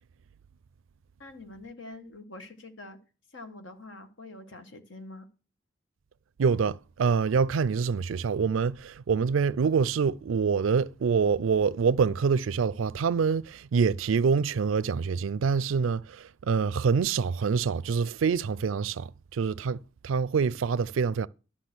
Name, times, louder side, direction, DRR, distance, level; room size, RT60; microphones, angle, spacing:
voice 1, 1.2-3.0 3.3-5.3, left 2 dB, 70° left, 1.5 m, -45 dB
voice 2, 6.4-21.3, right 5 dB, 85° right, 0.4 m, -26 dB
12.0 x 5.8 x 6.1 m
head